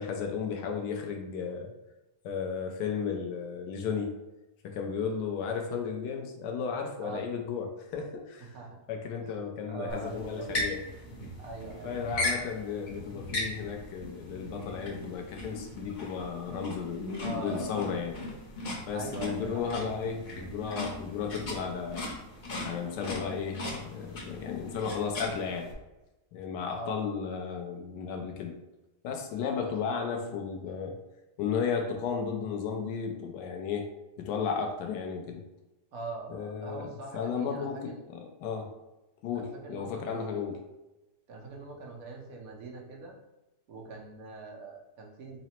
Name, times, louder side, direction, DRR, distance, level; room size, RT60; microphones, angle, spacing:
voice 1, 0.0-1.7 2.2-4.1 4.6-8.6 8.9-10.9 11.8-18.2 18.9-22.1 22.6-25.7 26.3-28.6 29.0-31.0 31.4-33.9 34.2-35.4 36.3-38.7 39.2-40.6, left 6 dB, 90° left, 3 dB, 1.2 m, -34 dB
voice 2, 9.7-10.5 11.4-12.0 17.2-17.7 18.9-19.6 26.7-27.0 29.6-29.7 35.9-38.0 39.3-40.6 41.3-43.1 43.7-45.4, right 3 dB, 65° right, -1 dB, 1.2 m, -42 dB
sound 1, 9.9-25.7, left 2 dB, 45° left, 0.6 m, -38 dB
3.8 x 2.0 x 4.2 m, 1.0 s
omnidirectional pair, 1.8 m